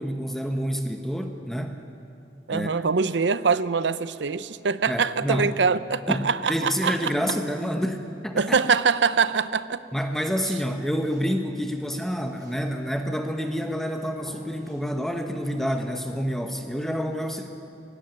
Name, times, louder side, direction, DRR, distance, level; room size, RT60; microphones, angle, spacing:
voice 1, 0.0-1.8 2.5-2.7 4.9-5.5 6.1-8.6 9.9-17.5, equal, ahead, 5 dB, 1.0 m, -28 dB
voice 2, 2.5-7.1 8.4-9.8, right 5 dB, 75° right, 15 dB, 0.6 m, -23 dB
Walk footsteps, 10.8-13.0 13.4-13.8 14.2-14.8 15.4-15.9, equal, 20° right, 4.7 m, -51 dB
17.0 x 16.5 x 9.6 m, 2.7 s
head